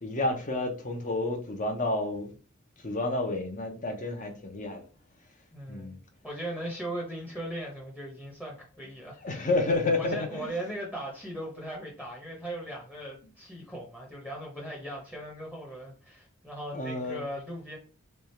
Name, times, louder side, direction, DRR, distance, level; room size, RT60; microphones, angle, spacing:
voice 1, 0.0-2.3 2.8-4.8 5.7-6.0 9.2-10.5 16.7-17.2, left 2 dB, 40° left, 0.8 m, -30 dB
voice 2, 5.5-5.9 6.2-9.5 9.9-17.8, right 1 dB, 5° left, 0.9 m, -38 dB
3.4 x 2.4 x 4.3 m
head